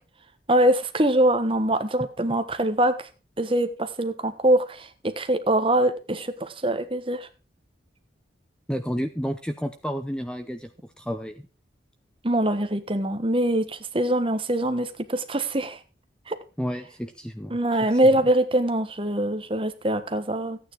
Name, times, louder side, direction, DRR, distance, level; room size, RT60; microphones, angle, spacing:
voice 1, 0.5-3.1 3.4-7.3 12.2-15.8 16.3-16.4 17.5-20.6, right 1 dB, 30° right, 9 dB, 1.3 m, -23 dB
voice 2, 8.7-10.7 11.0-11.4 16.6-17.6 17.9-18.0, equal, 5° left, 8 dB, 0.7 m, -31 dB
14.5 x 9.2 x 4.7 m, 0.32 s
head